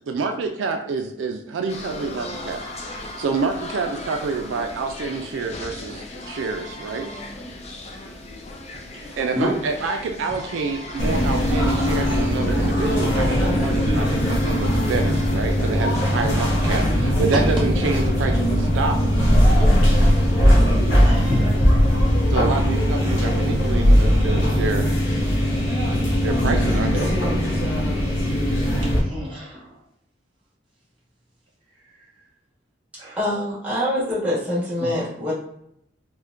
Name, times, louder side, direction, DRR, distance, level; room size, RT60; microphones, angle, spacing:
voice 1, 0.0-2.6 3.2-7.0 9.2-19.0 22.3-24.9 26.2-27.1, right 4 dB, 80° right, 5 dB, 0.3 m, -27 dB
sound 1, 1.7-16.5, left 2 dB, 35° left, 0.5 m, -37 dB
voice 2, 8.9-9.5 19.7-19.8 21.0-21.6 22.1-22.2 29.0-29.7 33.0-33.2 34.8-34.9, equal, 25° right, -8 dB, 1.4 m, -29 dB
sound 2, 11.0-29.0, equal, 85° left, 0.9 m, -19 dB
voice 3, 33.2-35.3, left 1 dB, 10° right, -9 dB, 1.3 m, -24 dB
4.4 x 2.1 x 2.5 m, 0.75 s
head